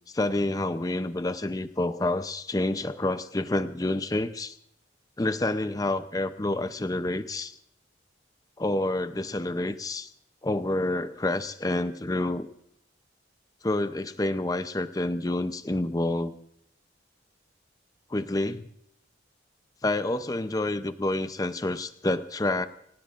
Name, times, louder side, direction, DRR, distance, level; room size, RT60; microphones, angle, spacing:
voice 1, 0.1-4.6 5.2-7.5 8.6-10.1 10.4-12.5 13.6-16.3 18.1-18.6 19.8-22.7, left 2 dB, 20° left, 11 dB, 0.6 m, -28 dB
26.5 x 18.0 x 2.5 m, 0.71 s
head